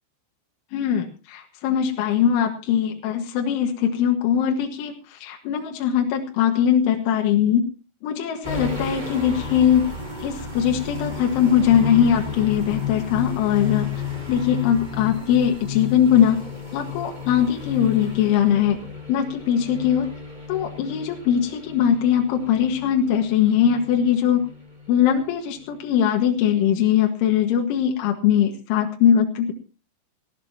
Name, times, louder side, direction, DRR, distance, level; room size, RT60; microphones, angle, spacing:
voice 1, 0.7-7.6 8.0-9.9 10.2-13.9 14.3-16.4 16.7-18.8 19.1-20.1 20.5-24.4 24.9-29.5, left 9 dB, 75° left, 3 dB, 4.0 m, -21 dB
sound 1, 8.4-25.3 25.6-25.8, left 6 dB, 10° right, 2.7 m, -33 dB
19.0 x 17.0 x 2.9 m, 0.33 s
omnidirectional pair, 5.8 m